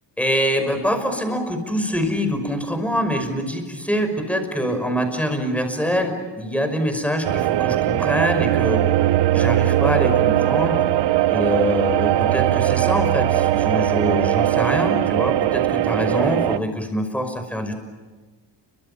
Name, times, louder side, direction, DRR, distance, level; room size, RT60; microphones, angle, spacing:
voice 1, 0.2-8.8 9.3-10.8 11.3-17.7, equal, 5° left, 6 dB, 5.7 m, -24 dB
sound 1, 7.2-16.6, right 13 dB, 75° right, 0.8 m, -20 dB
29.5 x 24.5 x 7.2 m, 1.3 s
cardioid pair, 105°, 42 cm